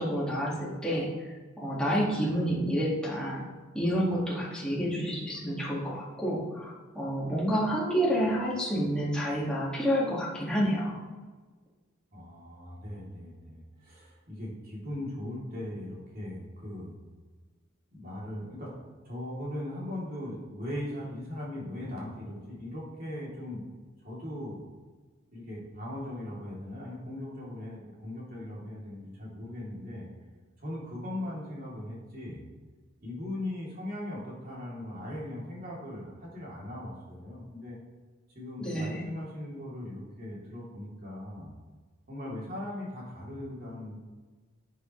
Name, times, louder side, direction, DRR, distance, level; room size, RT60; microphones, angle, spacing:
voice 1, 0.0-3.4 3.7-11.0 38.6-39.1, equal, 5° left, -6 dB, 2.2 m, -29 dB
voice 2, 12.1-16.9 17.9-18.7 19.0-23.7 24.0-24.6 25.3-30.1 30.6-32.4 33.0-37.8 38.3-41.5 42.1-44.0, left 1 dB, 45° right, -5 dB, 3.3 m, -39 dB
11.0 x 8.2 x 3.3 m, 1.4 s
head